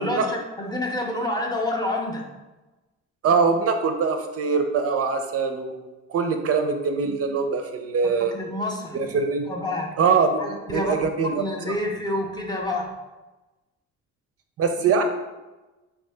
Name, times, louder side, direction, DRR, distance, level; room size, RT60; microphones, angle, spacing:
voice 1, 0.0-2.2 8.2-9.0 9.5-9.9 10.4-10.9 11.3-12.9, left 1 dB, 15° left, 0 dB, 0.6 m, -28 dB
voice 2, 3.2-8.3 8.9-9.4 10.0-10.4 10.7-11.8 14.6-15.0, right 5 dB, 50° right, 5 dB, 0.4 m, -23 dB
3.4 x 2.7 x 3.3 m, 1.1 s
cardioid pair, 90°, 30 cm